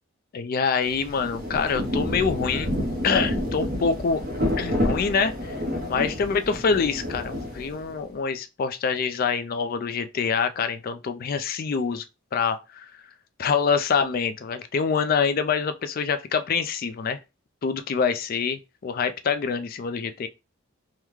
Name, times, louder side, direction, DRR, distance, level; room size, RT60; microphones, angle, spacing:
voice 1, 0.3-2.7 3.0-4.2 4.6-5.6 5.9-12.0 12.3-12.9 13.4-17.2 17.6-20.3, left 5 dB, 45° left, 0.3 m, -25 dB
Rain, 0.8-8.1, left 1 dB, 45° right, 0.8 m, -29 dB
3.5 x 2.1 x 3.0 m
head